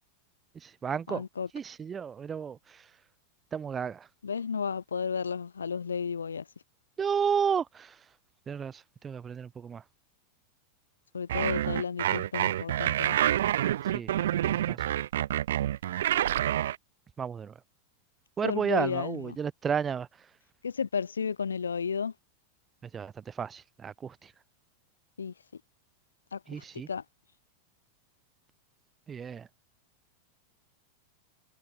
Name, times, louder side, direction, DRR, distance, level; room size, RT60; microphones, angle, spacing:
voice 1, 0.5-1.2 1.5-2.9 3.5-4.1 7.0-8.0 8.5-9.8 13.9-14.2 14.5-14.8 17.2-17.5 18.4-20.1 22.8-24.3 26.5-26.9 29.1-29.5, right 7 dB, 20° right, 1.1 m, -32 dB
voice 2, 1.1-1.5 4.2-6.4 11.1-13.2 18.4-19.4 20.6-22.1 25.2-25.6 26.3-27.0, left 6 dB, 70° left, 5.1 m, -33 dB
sound 1, 11.3-16.8, right 12 dB, 60° right, 0.9 m, -27 dB
figure-of-eight pair, 90°, 0 cm